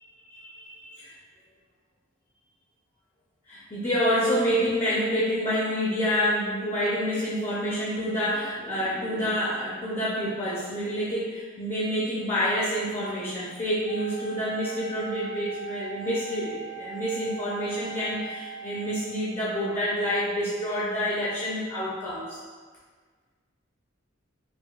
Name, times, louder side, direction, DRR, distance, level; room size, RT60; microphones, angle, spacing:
voice 1, 0.3-1.1 3.5-22.4, equal, 30° left, -8 dB, 0.6 m, -28 dB
Wind instrument woodwind instrument, 13.9-19.3, right 6 dB, 30° right, 0.4 m, -41 dB
4.9 x 2.3 x 2.4 m, 1.5 s
head